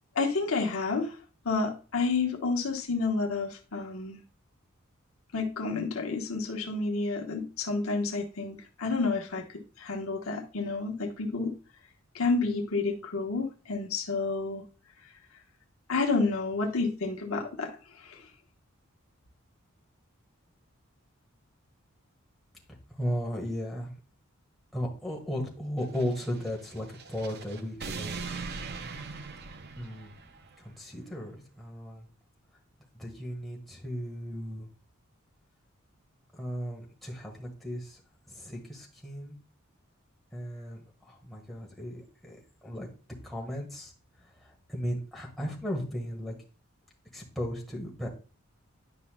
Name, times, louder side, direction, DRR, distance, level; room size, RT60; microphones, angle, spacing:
voice 1, 0.1-1.2 1.4-4.2 5.3-9.4 9.8-11.5 12.1-14.6 15.9-17.7 17.9-18.2, left 3 dB, 80° left, 2 dB, 1.1 m, -30 dB
voice 2, 22.9-23.9 24.7-28.2 29.8-30.1 30.6-32.1 32.9-34.7 36.3-38.0 38.3-39.4 40.3-42.4 42.6-42.9 43.2-43.9 44.4-46.3 47.1-48.1, equal, ahead, -2 dB, 1.4 m, -36 dB
sound 1, 25.8-30.6, right 4 dB, 50° right, 0.6 m, -41 dB
9.9 x 5.5 x 2.2 m, 0.36 s
head